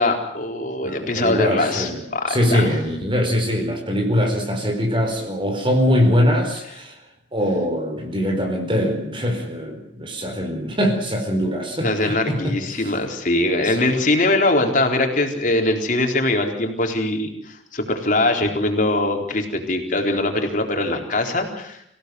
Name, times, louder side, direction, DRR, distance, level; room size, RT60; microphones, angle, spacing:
voice 1, 0.0-2.7 11.8-21.8, left 2 dB, 45° left, 4 dB, 4.2 m, -22 dB
voice 2, 0.8-2.0 2.3-6.9 7.3-12.8 13.6-13.9, equal, 30° right, 4 dB, 4.5 m, -22 dB
26.0 x 16.5 x 7.9 m, 0.74 s
head